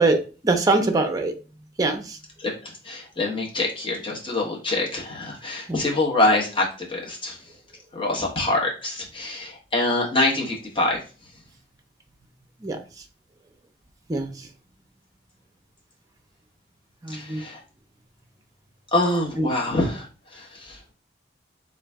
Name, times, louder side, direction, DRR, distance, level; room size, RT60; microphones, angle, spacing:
voice 1, 0.0-1.3 1.8-2.2 5.7-5.9 12.6-12.8 14.1-14.5 17.0-17.4 19.4-19.5, right 2 dB, 20° right, 4 dB, 0.5 m, -23 dB
voice 2, 2.4-7.4 7.9-11.0 17.1-17.6 18.9-20.1 20.3-20.8, left 2 dB, 30° left, -2 dB, 1.1 m, -25 dB
3.8 x 2.6 x 3.4 m, 0.35 s
head